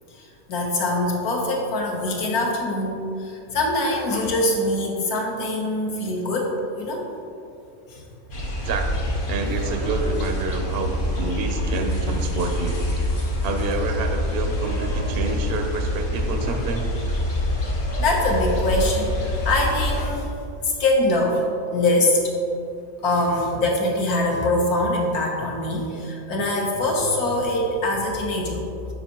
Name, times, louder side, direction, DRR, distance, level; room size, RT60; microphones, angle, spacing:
voice 1, 0.1-7.0 7.9-8.0 18.0-20.3 20.6-21.4 21.7-22.3 23.0-28.9, left 1 dB, 75° left, -1 dB, 1.5 m, -23 dB
sound 1, 8.3-20.1, left 1 dB, 55° left, 1.5 m, -26 dB
voice 2, 8.6-12.8 13.4-16.9, right 3 dB, 60° right, 4 dB, 0.6 m, -28 dB
8.0 x 5.4 x 2.9 m, 2.6 s
omnidirectional pair, 1.6 m